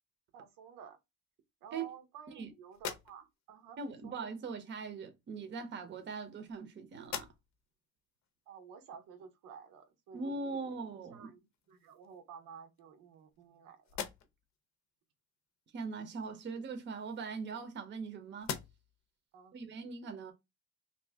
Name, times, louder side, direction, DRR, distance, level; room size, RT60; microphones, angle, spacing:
voice 1, 0.3-1.0 1.6-3.8 4.0-4.1 8.5-11.4 11.7-14.0 19.3-19.6, right 7 dB, 90° right, 0.9 m, -52 dB
sound 1, 2.7-3.6 4.7-4.8 5.8-6.7 7.0-7.7 8.2-8.3 11.0-11.1 11.5-12.2 12.8-13.5 13.8-14.6 16.6-18.0 18.4-19.1, left 8 dB, 55° left, 0.6 m, -45 dB
voice 2, 3.8-7.3 10.1-11.3 15.7-18.5 19.5-20.3, right 4 dB, 35° right, 0.7 m, -41 dB
2.7 x 2.6 x 3.3 m
cardioid pair, 160°, 32 cm